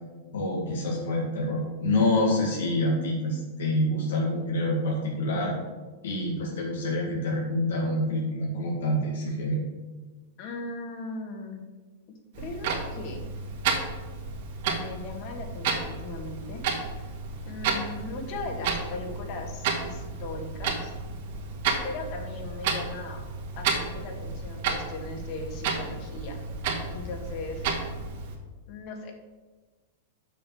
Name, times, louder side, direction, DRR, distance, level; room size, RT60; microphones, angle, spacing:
voice 1, 0.3-5.5 6.0-9.6, left 1 dB, 85° left, -3 dB, 1.9 m, -27 dB
voice 2, 10.4-11.7 12.4-13.2 14.7-17.1 17.4-20.9 21.8-23.2 23.5-26.4 26.9-27.7 28.7-29.1, left 3 dB, 45° left, 3 dB, 1.7 m, -38 dB
Clock, 12.3-28.4, right 5 dB, 60° right, 1.8 m, -32 dB
6.8 x 5.2 x 6.9 m, 1.3 s
supercardioid pair, 145°, 0 cm